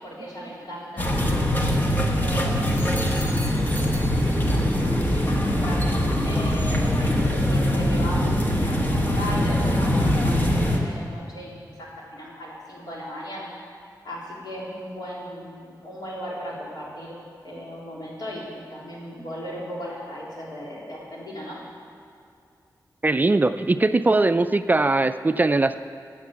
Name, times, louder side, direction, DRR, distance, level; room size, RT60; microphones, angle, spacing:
voice 1, 0.0-4.2 4.7-13.5 14.0-17.2 17.4-21.6, equal, 70° left, -5 dB, 3.5 m, -37 dB
sound 1, 1.0-10.8, equal, 25° left, 1.4 m, -22 dB
voice 2, 23.0-25.8, right 2 dB, 25° right, 10 dB, 0.3 m, -20 dB
13.5 x 8.2 x 7.6 m, 2.4 s
wide cardioid pair, 130°, 7 cm